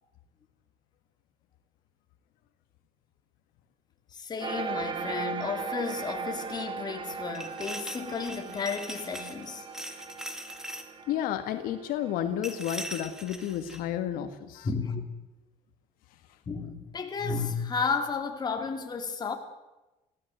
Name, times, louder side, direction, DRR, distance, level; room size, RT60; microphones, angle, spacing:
voice 1, 4.1-9.7 14.6-15.0 16.5-19.4, left 5 dB, 30° left, 4 dB, 3.1 m, -33 dB
sound 1, 4.4-13.4, right 5 dB, 35° right, 2.3 m, -38 dB
sound 2, 7.3-9.5 9.7-10.9 12.4-13.8, equal, 5° right, 2.1 m, -40 dB
voice 2, 11.1-14.7, left 10 dB, 85° left, 8 dB, 1.8 m, -31 dB
24.5 x 16.5 x 7.9 m, 1.0 s
cardioid pair, 140°, 14 cm